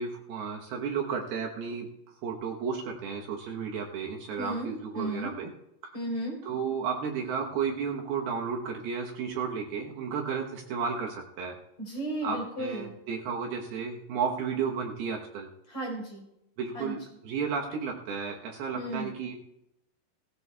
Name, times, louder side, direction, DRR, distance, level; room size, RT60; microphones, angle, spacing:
voice 1, 0.0-1.9 2.2-5.5 6.5-11.6 12.2-15.5 16.6-19.4, right 6 dB, 75° right, 1 dB, 2.8 m, -33 dB
voice 2, 4.4-5.3 5.9-6.4 11.8-12.9 15.7-16.3 16.7-16.9 18.7-19.1, right 1 dB, 35° left, -2 dB, 4.6 m, -34 dB
17.5 x 16.5 x 2.3 m, 0.82 s
omnidirectional pair, 4.8 m